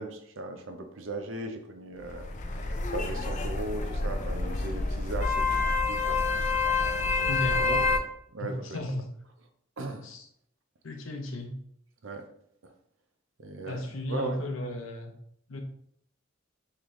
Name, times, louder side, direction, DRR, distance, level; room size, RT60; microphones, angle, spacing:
voice 1, 0.0-2.3 2.9-5.6 5.9-8.0 8.3-8.8 9.8-10.0 12.0-12.2 13.4-13.8 14.1-14.4, right 2 dB, 75° right, 6 dB, 0.6 m, -38 dB
sound 1, 2.0-8.0, left 3 dB, 40° left, 0.4 m, -28 dB
voice 2, 7.3-7.7 8.4-9.1 10.0-10.3 10.8-11.6 13.7-15.1 15.5-15.6, left 1 dB, 90° left, 4 dB, 0.7 m, -34 dB
3.8 x 3.2 x 3.1 m, 0.69 s
head